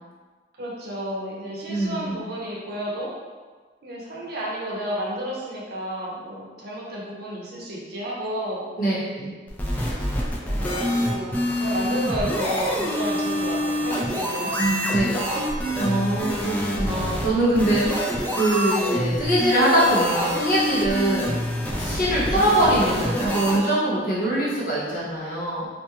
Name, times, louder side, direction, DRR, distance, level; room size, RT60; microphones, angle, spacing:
voice 1, 0.6-3.1 3.8-8.6 10.4-15.0, equal, 60° right, -4 dB, 0.6 m, -32 dB
voice 2, 1.7-2.2 8.8-9.3 14.6-15.2 15.7-21.4 21.8-25.7, right 1 dB, 55° left, -8 dB, 0.9 m, -23 dB
sound 1, 9.5-23.6, equal, 10° left, 0.3 m, -26 dB
2.5 x 2.2 x 2.9 m, 1.4 s
head